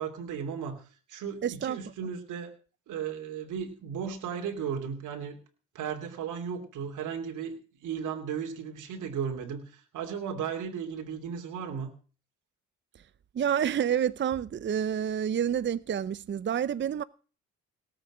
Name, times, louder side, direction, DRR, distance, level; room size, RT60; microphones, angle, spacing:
voice 1, 0.0-2.5 2.9-5.4 5.7-7.5 7.8-11.9, right 7 dB, 80° right, 3.1 m, -35 dB
voice 2, 1.4-1.8 13.3-17.0, right 9 dB, 40° right, 0.6 m, -28 dB
18.5 x 8.0 x 6.1 m
cardioid pair, 90°, 30 cm